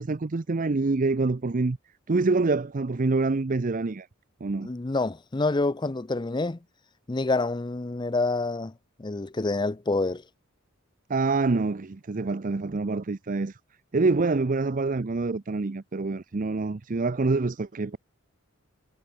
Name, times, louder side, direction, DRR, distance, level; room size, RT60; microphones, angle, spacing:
voice 1, 0.0-1.8 2.1-4.1 4.4-4.7 11.1-13.6 13.9-18.0, right 3 dB, 40° right, 0.5 m, -26 dB
voice 2, 4.6-6.6 7.1-8.7 9.0-10.2, left 3 dB, 20° left, 0.5 m, -27 dB
head